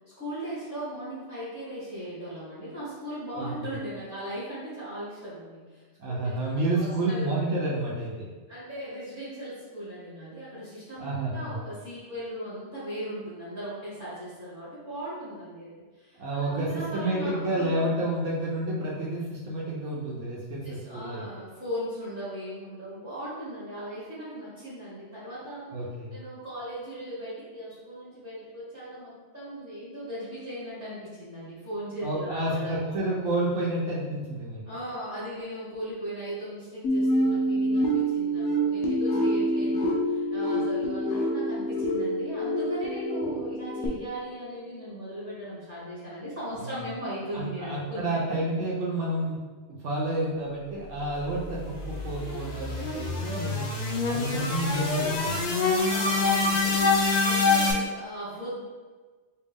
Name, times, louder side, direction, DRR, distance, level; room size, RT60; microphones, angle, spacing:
voice 1, 0.2-7.5 8.5-15.7 16.0-18.0 20.6-25.7 26.1-33.0 34.7-48.4 55.8-58.6, equal, 15° right, -12 dB, 1.3 m, -38 dB
voice 2, 6.0-8.3 11.0-11.5 16.2-21.2 25.7-26.2 32.0-34.6 47.3-49.4 49.7-53.7 54.1-55.4, right 1 dB, 90° right, -5 dB, 1.1 m, -30 dB
sound 1, 36.8-43.9, right 1 dB, 80° left, 0.9 m, -26 dB
sound 2, 51.3-57.7, left 4 dB, 50° left, 0.6 m, -26 dB
3.3 x 2.9 x 3.5 m, 1.4 s
omnidirectional pair, 1.2 m